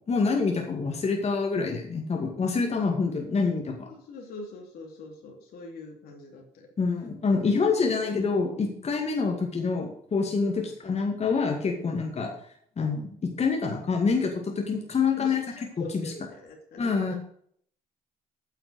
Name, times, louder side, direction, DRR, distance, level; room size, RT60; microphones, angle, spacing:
voice 1, 0.1-3.9 6.8-12.3 12.8-15.4 15.8-16.1 16.8-17.1, left 4 dB, 40° left, 1 dB, 2.3 m, -26 dB
voice 2, 3.9-6.7 7.7-7.9 10.6-10.7 15.2-17.1, left 3 dB, 65° left, 1 dB, 2.8 m, -43 dB
9.5 x 5.9 x 8.0 m, 0.63 s
hypercardioid pair, 60°, 17 cm